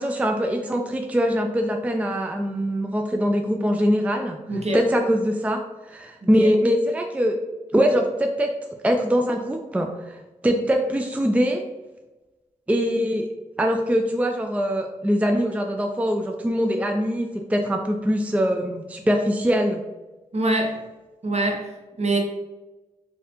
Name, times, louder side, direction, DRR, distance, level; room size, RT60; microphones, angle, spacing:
voice 1, 0.0-4.4 4.7-5.6 5.9-7.4 7.7-8.5 8.8-10.2 10.4-11.6 12.7-13.3 13.6-19.8, equal, 10° right, 3 dB, 0.4 m, -22 dB
voice 2, 4.5-4.8 6.4-6.5 20.3-20.8 21.2-21.7 22.0-22.2, right 2 dB, 50° right, 1 dB, 0.8 m, -24 dB
3.9 x 2.7 x 2.8 m, 1.1 s
cardioid pair, 60°, 14 cm